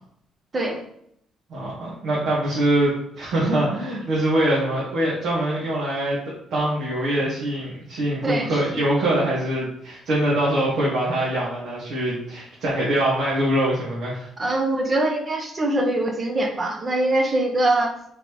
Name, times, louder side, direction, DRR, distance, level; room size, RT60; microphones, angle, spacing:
voice 1, 1.5-6.2 6.5-14.3, right 1 dB, 75° right, -8 dB, 1.5 m, -23 dB
voice 2, 8.2-8.6 14.4-17.9, right 1 dB, 35° right, 3 dB, 0.8 m, -23 dB
3.8 x 3.2 x 3.1 m, 0.71 s
cardioid pair, 80°, 0 cm